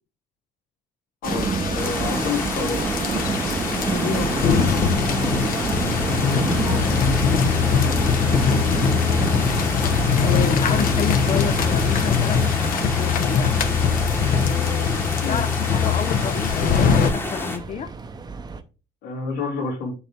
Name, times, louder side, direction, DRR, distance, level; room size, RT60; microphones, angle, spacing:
voice 1, 1.2-2.8 6.2-7.1 10.4-10.8 15.2-15.5 19.0-19.9, left 4 dB, 80° left, 2.7 m, -30 dB
sound 1, 1.2-17.1, left 7 dB, 55° left, 1.0 m, -22 dB
sound 2, 1.2-18.6, right 4 dB, 25° right, 0.7 m, -28 dB
sound 3, 1.8-17.6, left 1 dB, 15° left, 1.3 m, -31 dB
voice 2, 3.9-4.3 7.6-8.0 8.3-8.4 9.4-9.7 10.2-13.5 14.3-17.9, left 8 dB, 40° left, 0.5 m, -30 dB
6.9 x 5.4 x 3.5 m
cardioid pair, 110°, 17 cm